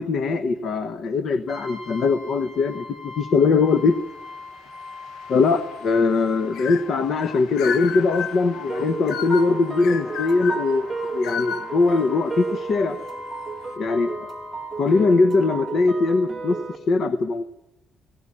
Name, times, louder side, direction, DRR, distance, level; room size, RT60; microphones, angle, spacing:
voice 1, 0.0-4.0 5.3-10.9 11.1-13.0 13.8-14.3 14.8-16.6 16.9-17.4, left 4 dB, 45° left, 9 dB, 1.1 m, -21 dB
Brass instrument, 1.5-15.1, left 3 dB, 25° left, 7.6 m, -42 dB
sound 1, 4.2-13.1, left 8 dB, 70° left, 0.8 m, -35 dB
sound 2, 8.7-16.8, right 4 dB, 10° right, 1.8 m, -33 dB
19.5 x 17.5 x 9.9 m, 0.92 s
cardioid pair, 170°, 0 cm